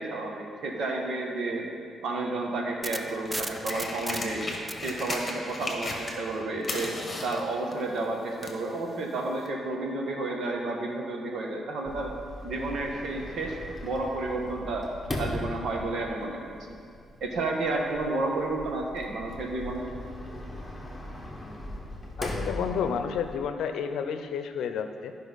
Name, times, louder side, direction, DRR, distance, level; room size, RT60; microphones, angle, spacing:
voice 1, 0.0-1.7 2.0-4.4 4.8-6.9 7.2-12.1 12.4-13.6 13.8-14.9 15.2-16.4 17.2-19.9, right 2 dB, 70° right, 0 dB, 1.5 m, -31 dB
sound 1, 2.5-6.7, right 1 dB, 15° right, 0.5 m, -38 dB
sound 2, 2.8-6.4 6.6-8.6 9.5-9.6, left 2 dB, 30° left, 1.4 m, -36 dB
Sliding door, 11.9-23.4, left 1 dB, 15° left, 1.4 m, -39 dB
voice 2, 22.2-25.1, left 7 dB, 85° left, 8 dB, 0.6 m, -31 dB
14.0 x 5.4 x 4.1 m, 2.3 s
cardioid pair, 95°, 0 cm